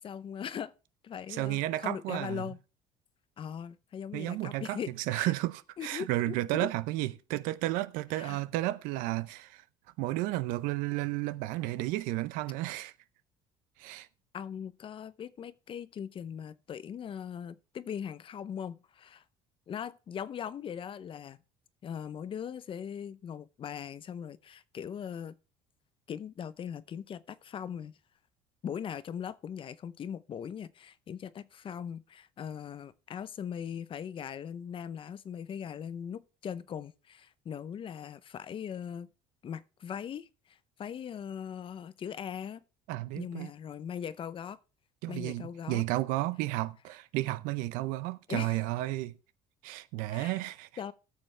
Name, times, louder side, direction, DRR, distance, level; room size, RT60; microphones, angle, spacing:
voice 1, 0.0-0.7 1.0-2.6 3.4-5.3 5.8-6.7 8.1-8.4 14.3-19.2 19.7-21.4 21.8-25.4 26.1-28.0 28.6-39.1 39.4-42.6 43.2-44.6 45.1-45.8 48.3-48.6 50.1-50.4 50.8-50.9, left 8 dB, 40° left, 0.6 m, -40 dB
voice 2, 1.3-2.5 4.1-4.8 5.1-9.6 10.0-12.9 13.8-14.1 42.9-43.5 45.0-49.2 49.6-50.7, right 17 dB, 85° right, 0.6 m, -32 dB
16.0 x 6.8 x 3.3 m
cardioid pair, 110°, 14 cm